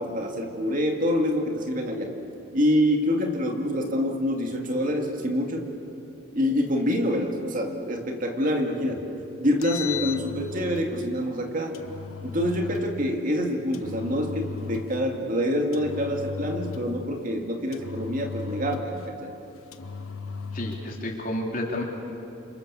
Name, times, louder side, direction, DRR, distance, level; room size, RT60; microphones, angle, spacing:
voice 1, 0.0-2.1 2.5-5.7 6.3-9.0 9.4-11.8 12.2-19.3, equal, 40° right, 3 dB, 2.2 m, -26 dB
Engine, 9.4-10.9 11.7-12.9 13.7-15.0 15.7-17.0 17.7-19.1 19.7-20.9, left 5 dB, 85° left, 1.2 m, -36 dB
voice 2, 20.5-21.8, left 1 dB, 40° left, -1 dB, 3.8 m, -30 dB
29.5 x 26.5 x 7.1 m, 2.9 s
head